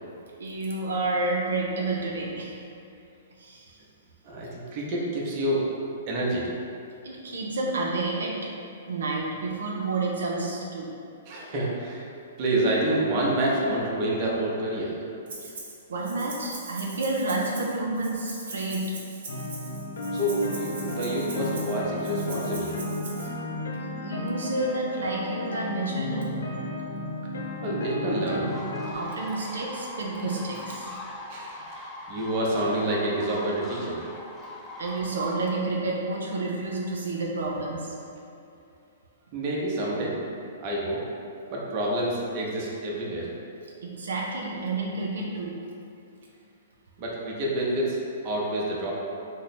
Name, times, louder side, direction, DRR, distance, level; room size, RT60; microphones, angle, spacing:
voice 1, 0.4-2.5 3.4-3.7 7.0-8.4 8.9-10.9 15.4-15.5 15.9-18.8 23.8-26.3 28.9-30.9 34.8-37.9 43.8-45.6, right 2 dB, 90° right, -2 dB, 0.5 m, -30 dB
voice 2, 4.3-5.7 6.1-6.5 11.3-12.1 12.4-14.9 20.1-22.8 27.6-28.5 31.3-34.0 39.3-40.2 40.6-41.0 41.5-43.3 47.0-48.9, right 1 dB, 35° right, -4 dB, 0.6 m, -28 dB
Rattle (instrument), 15.3-15.8 16.0-23.3, right 3 dB, 65° right, 0.8 m, -42 dB
sound 1, 19.3-28.9, left 1 dB, 80° left, 0.4 m, -33 dB
sound 2, 28.4-35.4, left 1 dB, 15° left, 0.3 m, -41 dB
3.0 x 2.0 x 4.1 m, 2.6 s
hypercardioid pair, 145°, 0 cm